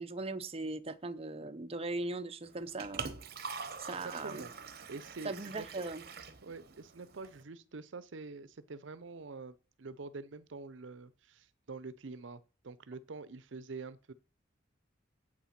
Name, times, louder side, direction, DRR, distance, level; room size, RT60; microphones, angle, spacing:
voice 1, 0.0-3.0 3.8-4.5 5.2-6.0, right 2 dB, 30° right, 0.7 m, -39 dB
Liquid, 2.4-7.4, right 5 dB, 55° right, 1.1 m, -45 dB
voice 2, 3.9-4.5 4.9-5.8 6.4-14.1, right 4 dB, 70° right, 0.6 m, -46 dB
8.6 x 8.1 x 5.8 m
head